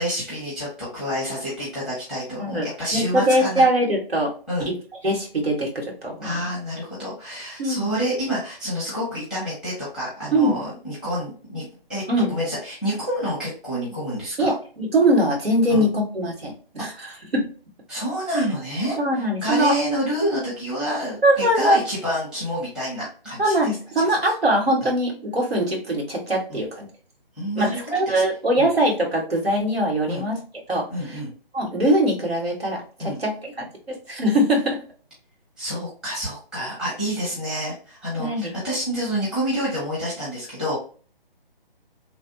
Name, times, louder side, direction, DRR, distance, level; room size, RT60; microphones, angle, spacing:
voice 1, 0.0-3.7 4.5-4.7 6.2-12.0 12.3-14.5 15.7-15.9 16.8-17.1 17.9-24.3 26.5-26.6 27.4-27.8 28.1-28.2 28.6-28.7 30.1-30.2 30.9-31.3 33.0-33.2 35.6-40.8, equal, ahead, -8 dB, 0.8 m, -28 dB
voice 2, 2.4-4.3 4.7-4.8 5.0-6.3 7.6-7.9 10.3-10.6 12.1-12.3 14.4-17.5 19.0-19.8 21.2-21.8 23.4-26.9 27.5-30.4 30.7-31.2 31.5-34.8 38.2-38.5, right 1 dB, 90° right, -1 dB, 1.5 m, -22 dB
3.1 x 2.5 x 2.7 m, 0.40 s
figure-of-eight pair, 155°, 29 cm